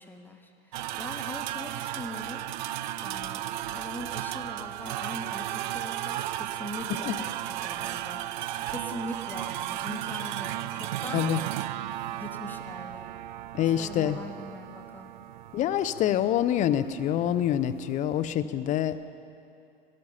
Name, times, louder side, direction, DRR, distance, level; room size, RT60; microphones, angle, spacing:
voice 1, 0.0-2.4 3.0-7.3 7.6-11.3 12.2-13.1 13.6-15.1, left 1 dB, 5° left, 4 dB, 1.1 m, -41 dB
sound 1, 0.7-18.3, right 13 dB, 50° right, 0.4 m, -35 dB
voice 2, 13.5-14.2 15.5-19.0, left 11 dB, 25° left, 13 dB, 0.5 m, -26 dB
17.5 x 13.0 x 5.5 m, 2.5 s
figure-of-eight pair, 90°, 30 cm